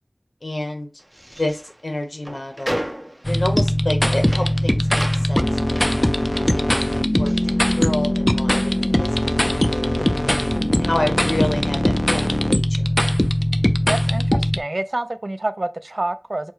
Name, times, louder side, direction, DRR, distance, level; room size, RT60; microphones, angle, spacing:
voice 1, 0.4-0.9 1.4-2.8 3.3-5.4 5.7-5.8 6.3-10.0 10.7-12.8, left 1 dB, 80° left, 1.1 m, -29 dB
sound 1, 1.0-8.5 8.8-10.2, equal, 15° right, 0.7 m, -35 dB
sound 2, 3.2-14.6, left 1 dB, 25° left, 0.5 m, -20 dB
voice 2, 13.9-16.5, right 2 dB, 70° right, 0.4 m, -27 dB
4.7 x 2.2 x 4.5 m
wide cardioid pair, 45°, 0 cm